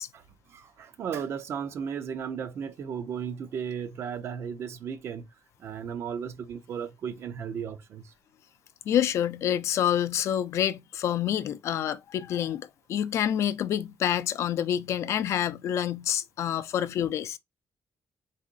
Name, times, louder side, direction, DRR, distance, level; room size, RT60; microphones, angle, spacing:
voice 1, 0.1-5.3 5.6-8.1 15.0-15.1, right 7 dB, 60° right, 0.6 m, -35 dB
voice 2, 8.9-17.4, left 10 dB, 70° left, 0.4 m, -27 dB
4.1 x 3.6 x 2.4 m
cardioid pair, 160°, 5 cm